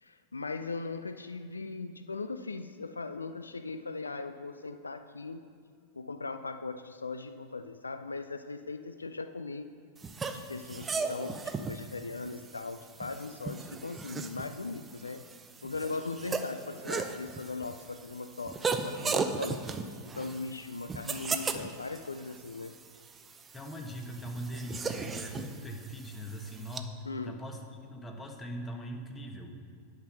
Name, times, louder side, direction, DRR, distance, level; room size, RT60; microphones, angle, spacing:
voice 1, 0.0-5.4 5.9-9.7 10.3-15.2 15.6-19.6 20.0-22.7 27.1-27.4, left 3 dB, 75° left, 10 dB, 0.3 m, -39 dB
sound 1, 10.0-26.8, right 4 dB, 20° right, 0.6 m, -37 dB
voice 2, 23.5-26.9 27.2-29.5, equal, 15° left, 3 dB, 1.2 m, -41 dB
10.5 x 5.9 x 5.8 m, 2.3 s
figure-of-eight pair, 90°, 0 cm